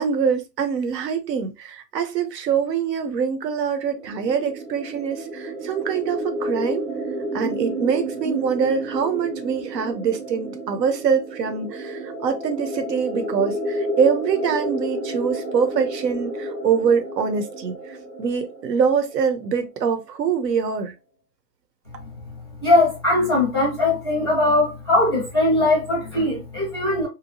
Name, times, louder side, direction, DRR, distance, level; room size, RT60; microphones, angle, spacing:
voice 1, 0.0-6.9 7.3-20.9, right 6 dB, 85° right, 0.9 m, -24 dB
sound 1, 3.8-19.5, right 1 dB, 40° right, 0.7 m, -31 dB
voice 2, 22.6-27.1, left 2 dB, 15° left, 0.5 m, -20 dB
2.8 x 2.3 x 2.7 m
hypercardioid pair, 170°, 48 cm